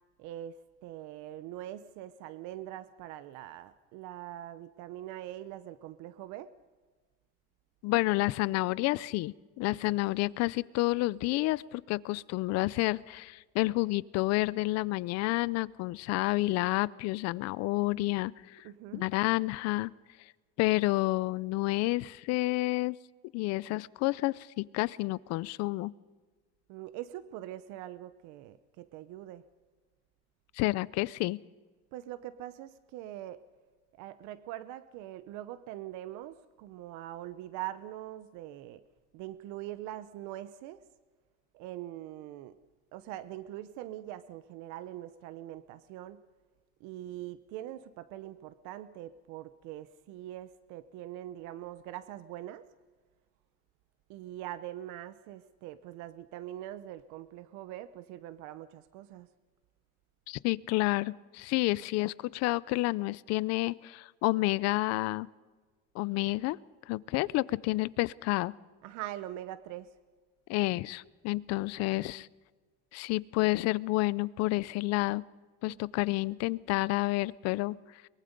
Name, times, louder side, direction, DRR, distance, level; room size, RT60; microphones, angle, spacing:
voice 1, 0.2-0.6 0.8-6.5 9.8-9.9 18.6-19.0 26.7-29.4 31.9-33.4 34.0-38.8 39.1-40.8 41.5-42.6 42.9-46.2 46.8-52.6 54.1-59.3 68.8-69.9 75.7-76.0, right 13 dB, 75° right, 14 dB, 0.8 m, -43 dB
voice 2, 7.8-18.6 18.9-19.9 20.6-23.0 23.3-25.9 30.6-31.4 60.3-65.3 65.9-66.6 66.9-68.5 70.5-72.3 72.9-75.2 75.6-77.8, left 20 dB, 60° left, 21 dB, 0.5 m, -30 dB
23.0 x 22.0 x 5.2 m, 1.4 s
cardioid pair, 170°, 29 cm